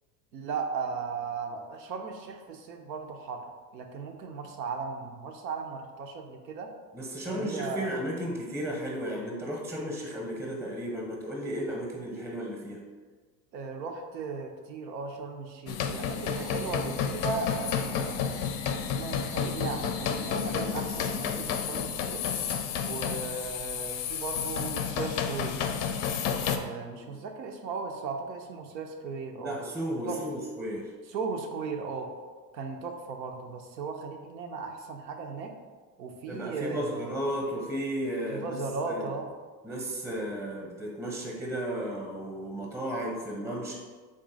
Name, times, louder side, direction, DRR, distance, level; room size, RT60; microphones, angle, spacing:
voice 1, 0.3-6.7 7.3-7.9 13.5-18.4 18.8-22.3 22.8-25.6 26.5-29.6 30.1-30.2 31.1-32.1 32.5-35.5 36.0-37.1 38.3-39.3, right 4 dB, 90° right, 4 dB, 0.7 m, -37 dB
voice 2, 6.9-12.8 27.1-27.2 29.4-30.9 36.3-38.6 38.8-39.1 39.6-43.7, equal, 5° right, -1 dB, 0.8 m, -34 dB
sound 1, 15.7-26.6, left 7 dB, 45° left, 0.5 m, -31 dB
3.7 x 2.7 x 3.8 m, 1.4 s
hypercardioid pair, 95°, 49 cm